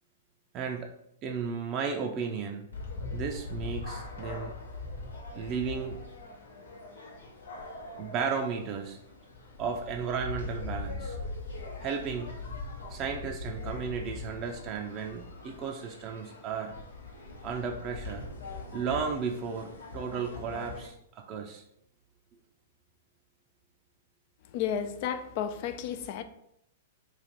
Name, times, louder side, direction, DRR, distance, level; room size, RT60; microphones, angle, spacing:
voice 1, 0.5-0.9 1.2-2.7 3.1-4.5 5.4-6.0 8.0-9.0 9.6-11.2 11.8-12.3 12.9-16.7 17.4-18.2 18.7-20.9 21.3-21.6, right 6 dB, 35° right, 2 dB, 0.4 m, -34 dB
sound 1, 2.7-20.9, left 3 dB, 85° left, 0.9 m, -41 dB
voice 2, 24.5-26.2, left 8 dB, 50° left, 10 dB, 0.4 m, -32 dB
3.2 x 2.4 x 4.1 m, 0.76 s
hypercardioid pair, 115°, 0 cm